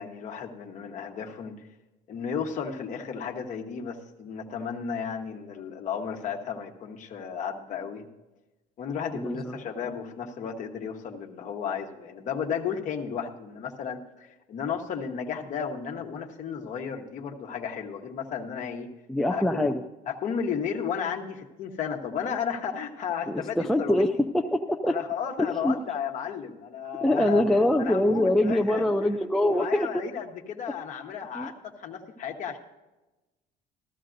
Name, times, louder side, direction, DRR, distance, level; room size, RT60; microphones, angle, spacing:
voice 1, 0.0-1.6 2.1-8.1 8.8-18.9 19.3-19.7 20.1-24.0 24.8-27.4 27.8-28.8 29.4-32.6, left 7 dB, 45° left, 2 dB, 1.2 m, -33 dB
voice 2, 9.1-9.6 19.1-19.8 23.3-25.0 25.4-25.8 27.0-30.0 31.3-31.5, left 1 dB, ahead, 4 dB, 0.3 m, -24 dB
14.5 x 13.0 x 2.6 m, 1.1 s
cardioid pair, 160°, 18 cm